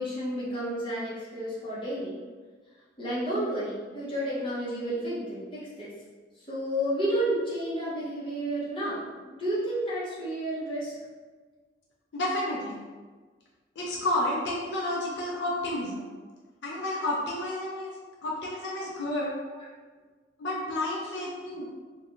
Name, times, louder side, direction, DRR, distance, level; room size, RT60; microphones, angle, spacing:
voice 1, 0.0-2.1 3.0-5.9 6.5-10.9 21.6-21.7, right 1 dB, 25° left, -9 dB, 0.7 m, -31 dB
voice 2, 12.1-12.8 13.8-16.1 16.6-17.9 18.2-19.3 20.4-21.7, left 1 dB, 70° left, -4 dB, 0.5 m, -30 dB
2.4 x 2.2 x 2.9 m, 1.4 s
head